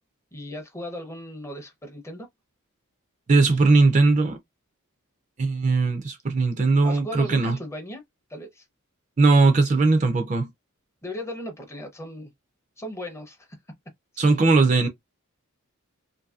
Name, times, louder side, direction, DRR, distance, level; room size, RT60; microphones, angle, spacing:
voice 1, 0.3-2.3 3.5-3.7 6.8-8.0 8.3-8.7 11.0-12.3 12.8-13.5 14.2-14.5, equal, 10° left, 0.6 m, -37 dB
voice 2, 3.3-4.4 5.4-7.6 9.2-10.5 14.2-14.9, right 3 dB, 35° right, 0.4 m, -19 dB
2.6 x 2.6 x 2.3 m
head